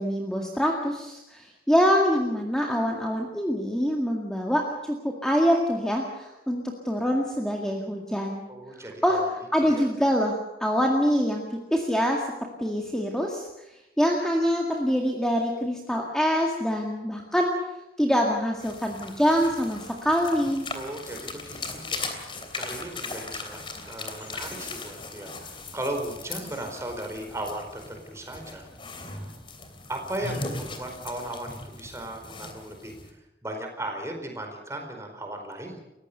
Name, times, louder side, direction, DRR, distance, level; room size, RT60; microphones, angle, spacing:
voice 1, 0.0-8.5 9.0-9.2 9.5-12.3 12.6-13.7 14.0-17.5 18.0-20.7, equal, 5° left, 0 dB, 2.0 m, -25 dB
voice 2, 8.5-9.3 9.6-9.9 20.7-22.0 22.5-23.6 23.8-28.7 29.9-35.8, right 1 dB, 15° right, 3 dB, 4.6 m, -36 dB
sound 1, 18.6-33.1, left 3 dB, 30° left, 3.1 m, -38 dB
29.5 x 15.5 x 6.9 m, 0.95 s
head